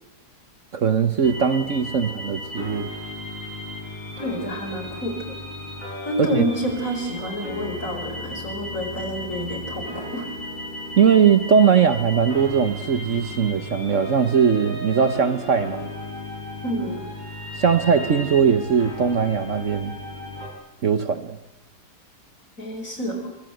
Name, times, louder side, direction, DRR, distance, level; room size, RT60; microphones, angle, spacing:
voice 1, 0.7-2.9 6.2-6.4 11.0-15.9 17.6-19.9 20.8-21.4, right 7 dB, 55° right, 11 dB, 1.3 m, -20 dB
sound 1, 1.2-20.5, left 1 dB, 25° left, 5.9 m, -35 dB
voice 2, 4.2-5.4 6.0-10.3 16.6-17.0 22.6-23.3, equal, 55° left, 5 dB, 5.3 m, -28 dB
24.0 x 23.5 x 7.8 m, 0.92 s
omnidirectional pair, 1.7 m